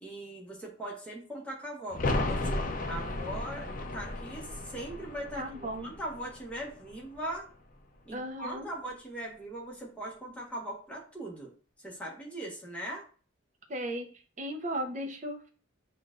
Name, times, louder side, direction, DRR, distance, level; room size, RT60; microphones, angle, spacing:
voice 1, 0.0-7.5 8.0-11.5 11.8-13.0, right 1 dB, 5° left, -3 dB, 1.1 m, -40 dB
sound 1, 1.9-7.5 7.8-7.9, left 2 dB, 40° left, 0.5 m, -35 dB
voice 2, 5.3-5.9 8.1-8.7 13.7-14.1 14.4-15.5, right 1 dB, 40° right, 4 dB, 0.7 m, -36 dB
6.4 x 2.4 x 2.5 m, 0.39 s
head